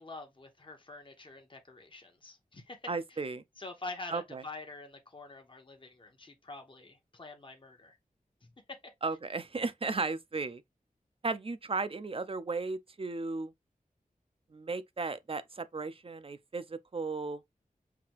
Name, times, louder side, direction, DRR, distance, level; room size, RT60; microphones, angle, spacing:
voice 1, 0.0-2.8 3.6-8.0, left 3 dB, 35° left, 0.9 m, -46 dB
voice 2, 2.9-3.4 4.1-4.4 9.0-10.6 11.2-13.5 14.5-17.4, right 3 dB, 40° right, 0.5 m, -35 dB
5.8 x 2.8 x 2.9 m
wide cardioid pair, 80°, 14 cm